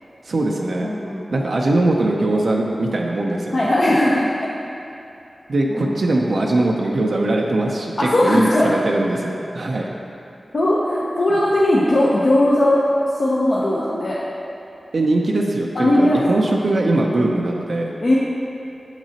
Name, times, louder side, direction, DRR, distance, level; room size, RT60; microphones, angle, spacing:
voice 1, 0.3-0.9 1.3-3.6 5.5-9.9 14.9-17.9, right 2 dB, 75° right, -1 dB, 0.5 m, -21 dB
voice 2, 0.8-1.5 3.5-4.3 5.7-6.0 8.0-8.7 10.5-12.8 13.1-14.2 15.7-16.5 18.0-18.1, left 1 dB, 65° left, -7 dB, 0.7 m, -18 dB
7.4 x 5.9 x 2.8 m, 2.8 s
cardioid pair, 45°, 0 cm